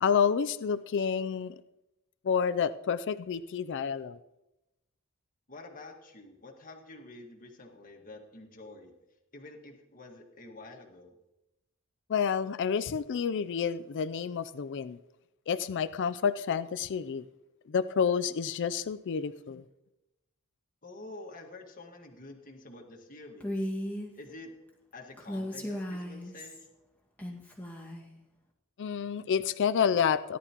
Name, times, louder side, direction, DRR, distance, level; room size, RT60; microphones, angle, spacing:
voice 1, 0.0-1.6 2.2-4.2 12.1-15.0 15.5-17.3 17.7-19.6 28.8-30.4, left 7 dB, 55° left, 13 dB, 0.4 m, -29 dB
voice 2, 5.5-8.9 9.3-11.1 20.8-23.7 24.1-24.5 24.9-26.7, left 2 dB, 40° left, 3 dB, 1.7 m, -48 dB
Female speech woman speaking, 23.4-24.1 25.2-26.7 27.2-28.1, equal, 5° left, 1.7 m, -36 dB
17.5 x 11.0 x 2.9 m, 0.95 s
head